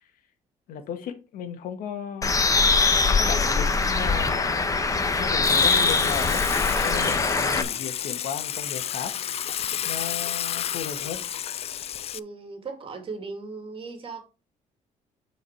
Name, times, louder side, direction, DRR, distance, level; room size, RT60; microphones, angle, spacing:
voice 1, 0.7-2.5 3.2-4.6 5.2-6.5 6.8-9.1 9.8-11.2, left 7 dB, 80° left, 1.5 m, -35 dB
Bird, 2.2-7.6, left 4 dB, 25° left, 1.0 m, -22 dB
Water / Water tap faucet / Sink (filling or washing), 5.4-12.2, left 10 dB, 45° left, 0.4 m, -31 dB
voice 2, 12.1-14.3, right 4 dB, 40° right, 2.3 m, -37 dB
8.6 x 4.8 x 4.7 m
cardioid pair, 105°, 14 cm